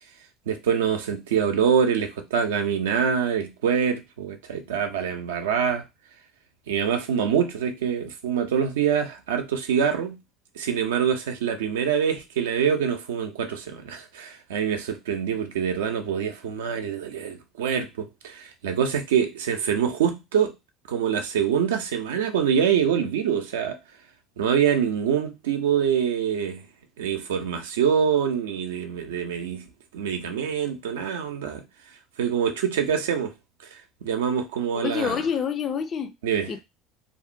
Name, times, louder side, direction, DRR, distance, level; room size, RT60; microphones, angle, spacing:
voice 1, 0.5-5.8 6.7-10.2 10.6-20.5 20.9-23.8 24.4-26.7 27.0-29.7 29.9-31.6 32.2-33.3 33.7-35.2 36.2-36.5, right 8 dB, 80° right, 0.4 m, -25 dB
voice 2, 34.7-36.1 36.5-36.6, left 7 dB, 45° left, 0.4 m, -27 dB
2.5 x 2.1 x 2.5 m
hypercardioid pair, 70°, 0 cm